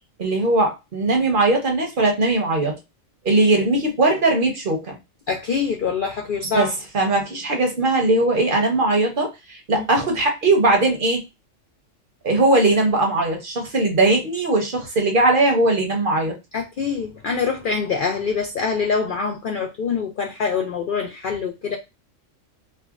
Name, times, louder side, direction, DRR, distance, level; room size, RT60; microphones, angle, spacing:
voice 1, 0.2-2.7 3.2-5.0 6.5-11.2 12.2-16.4, right 2 dB, 45° right, 0.8 m, -19 dB
voice 2, 5.3-6.7 9.7-9.8 16.5-21.8, left 5 dB, 65° left, 0.5 m, -24 dB
4.5 x 2.1 x 2.4 m
omnidirectional pair, 1.4 m